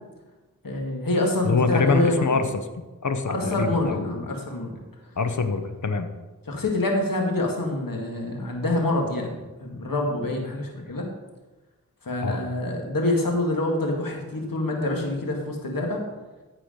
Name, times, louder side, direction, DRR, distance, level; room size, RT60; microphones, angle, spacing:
voice 1, 0.6-2.4 3.3-4.7 6.5-11.1 12.0-16.0, left 2 dB, 80° left, 1 dB, 2.0 m, -26 dB
voice 2, 1.4-2.5 2.8-4.2 5.2-6.1 12.2-12.4, left 4 dB, 60° left, 8 dB, 1.0 m, -25 dB
14.5 x 4.9 x 5.2 m, 1.2 s
wide cardioid pair, 50°, 34 cm